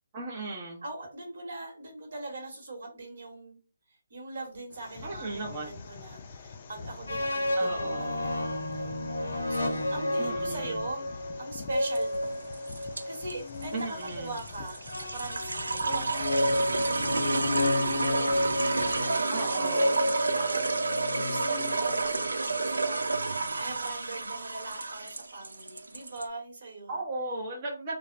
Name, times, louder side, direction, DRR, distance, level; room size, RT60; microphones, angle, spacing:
voice 1, 0.1-0.8 5.0-5.7 7.6-8.2 10.2-10.8 13.7-14.3 19.3-19.9 26.9-28.0, right 2 dB, 25° right, -4 dB, 0.6 m, -36 dB
voice 2, 0.8-3.6 4.1-12.3 13.0-18.0 18.7-20.8 21.2-27.0, right 2 dB, 60° right, 1 dB, 1.1 m, -41 dB
sound 1, 4.7-19.0, left 5 dB, 35° left, 0.4 m, -45 dB
sound 2, 7.1-13.8 14.9-22.2, left 1 dB, 90° left, 0.6 m, -31 dB
sound 3, 11.7-26.2, right 3 dB, 90° right, 0.4 m, -31 dB
3.1 x 2.1 x 2.5 m, 0.35 s
hypercardioid pair, 160°, 0 cm